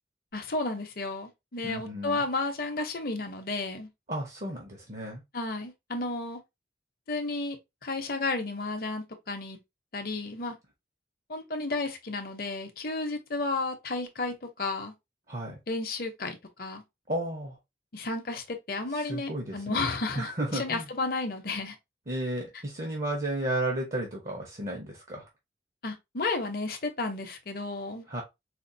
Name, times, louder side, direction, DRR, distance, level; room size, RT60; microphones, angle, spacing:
voice 1, 0.3-3.9 5.3-6.4 7.1-7.6 7.8-9.6 9.9-10.6 11.3-14.9 15.7-16.8 17.9-21.7 25.8-28.0, left 3 dB, 50° left, 0.8 m, -32 dB
voice 2, 1.6-2.2 4.1-5.2 15.3-15.6 17.1-17.6 18.9-19.8 20.1-20.9 22.1-25.3 28.1-28.2, right 1 dB, 45° right, 0.9 m, -33 dB
4.3 x 2.4 x 2.6 m
head